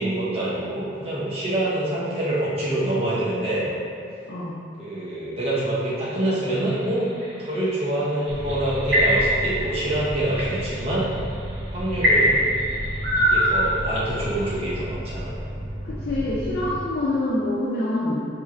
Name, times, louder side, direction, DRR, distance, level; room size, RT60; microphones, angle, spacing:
voice 1, 0.0-3.7 4.8-7.1 7.4-11.1 11.7-12.5 13.1-15.3, right 1 dB, 30° right, -10 dB, 0.7 m, -26 dB
sound 1, 6.0-7.3 8.3-9.5 10.0-10.5 11.2-11.3 12.0-14.2, equal, 70° right, 0.8 m, -21 dB
sound 2, 8.3-16.8, equal, 10° left, 0.7 m, -33 dB
voice 2, 15.8-18.3, left 1 dB, 55° left, -8 dB, 0.5 m, -26 dB
4.4 x 3.1 x 2.4 m, 2.5 s
head